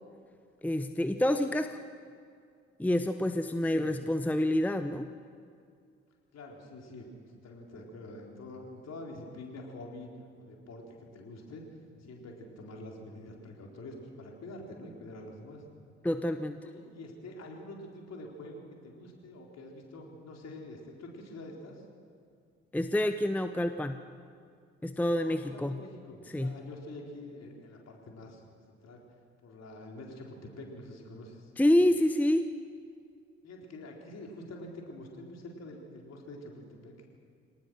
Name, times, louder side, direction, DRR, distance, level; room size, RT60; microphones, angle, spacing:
voice 1, 0.6-1.8 2.8-5.1 16.0-16.6 22.7-24.0 24.8-25.8 26.3-26.5 31.6-32.5, left 1 dB, 5° left, 9 dB, 0.8 m, -27 dB
voice 2, 3.6-4.0 6.3-10.1 10.4-11.6 12.0-15.6 16.6-21.8 25.2-29.0 29.4-31.5 33.4-36.9, left 1 dB, 50° left, 0 dB, 4.3 m, -46 dB
25.0 x 18.5 x 6.4 m, 2.3 s
figure-of-eight pair, 45°, 34 cm